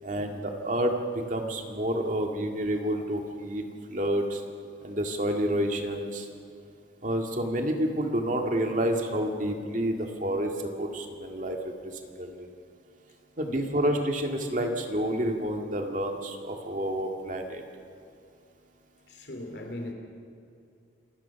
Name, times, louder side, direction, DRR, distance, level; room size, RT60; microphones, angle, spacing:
voice 1, 0.0-3.6 3.9-4.4 4.8-6.3 7.0-12.5 13.4-17.6, right 1 dB, 45° right, 3 dB, 2.1 m, -29 dB
voice 2, 19.1-19.9, left 1 dB, 70° left, 3 dB, 3.0 m, -39 dB
27.5 x 17.0 x 5.9 m, 2.5 s
head